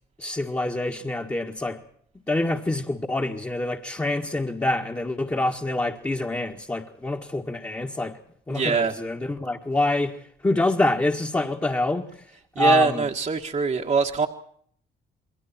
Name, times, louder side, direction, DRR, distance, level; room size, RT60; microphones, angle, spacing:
voice 1, 0.2-1.8 2.3-8.2 8.5-12.1 12.6-13.1, left 2 dB, 15° left, 1.9 m, -26 dB
voice 2, 8.5-8.9 12.5-14.3, right 5 dB, 40° right, 1.8 m, -23 dB
28.5 x 22.0 x 4.5 m
cardioid pair, 90°, 20 cm